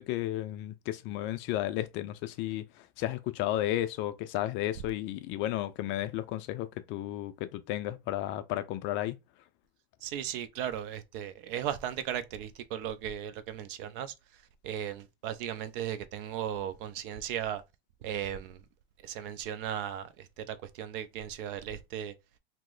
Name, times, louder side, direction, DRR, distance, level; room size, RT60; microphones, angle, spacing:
voice 1, 0.0-9.2, left 14 dB, 40° left, 0.4 m, -33 dB
voice 2, 10.0-14.1 14.6-17.6 18.0-18.6 19.0-22.1, right 10 dB, 55° right, 0.6 m, -36 dB
2.9 x 2.0 x 3.7 m
hypercardioid pair, 110°, 31 cm